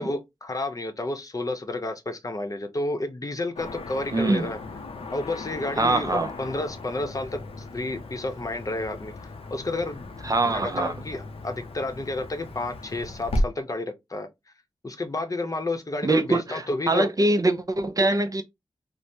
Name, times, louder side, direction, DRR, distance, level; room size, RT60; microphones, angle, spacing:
voice 1, 0.0-4.6 5.1-7.4 7.7-9.1 9.5-10.0 10.4-14.3 14.8-17.1, left 2 dB, 35° left, 0.7 m, -30 dB
Car passing by / Traffic noise roadway noise, 3.6-13.4, left 1 dB, 90° left, 0.6 m, -35 dB
voice 2, 4.1-4.5 5.8-6.3 10.2-10.9 16.0-18.4, right 2 dB, 40° right, 0.5 m, -23 dB
3.2 x 2.0 x 2.6 m
cardioid pair, 45°, 10 cm